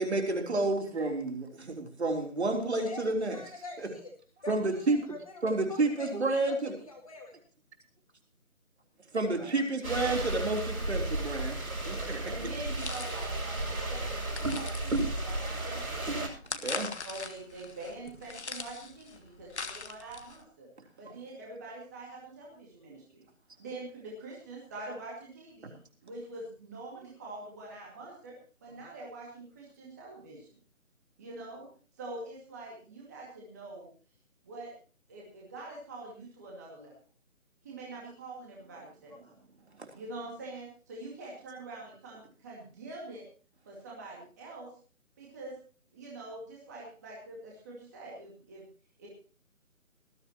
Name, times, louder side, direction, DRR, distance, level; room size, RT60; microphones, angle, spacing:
voice 1, 0.0-3.4 4.5-5.0 5.4-6.7 9.1-11.6 11.9-12.3 16.6-16.9, right 2 dB, 50° right, 3 dB, 3.6 m, -30 dB
voice 2, 2.7-4.1 4.4-6.3 6.8-7.3 15.6-15.8, left 3 dB, 25° left, 2 dB, 2.1 m, -46 dB
sound 1, 9.8-16.3, right 2 dB, 90° right, 7.3 m, -33 dB
voice 3, 11.8-16.1 16.5-20.7 21.0-23.2 23.6-25.8 26.0-28.3 28.6-30.5 31.2-31.7 32.0-33.9 34.4-34.7 35.1-36.9 37.6-39.3 39.9-43.2 43.7-44.7 45.2-45.5 45.9-48.6 49.0-49.1, right 2 dB, 10° right, -4 dB, 2.1 m, -45 dB
sound 2, 12.8-20.4, left 4 dB, 50° left, 1.4 m, -42 dB
19.5 x 14.0 x 3.0 m, 0.39 s
figure-of-eight pair, 175°, 42 cm